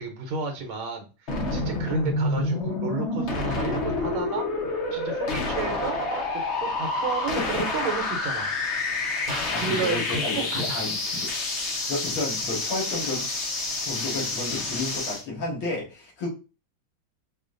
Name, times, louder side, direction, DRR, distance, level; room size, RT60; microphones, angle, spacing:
voice 1, 0.0-4.5 4.9-6.0 6.3-8.5 9.3-10.9, right 4 dB, 75° right, 3 dB, 1.6 m, -32 dB
sound 1, 1.3-15.2, left 2 dB, 60° left, 0.7 m, -28 dB
voice 2, 7.4-7.7 9.1-13.3 13.8-16.3, left 2 dB, 75° left, -2 dB, 2.3 m, -32 dB
5.0 x 2.4 x 2.5 m, 0.32 s
omnidirectional pair, 2.3 m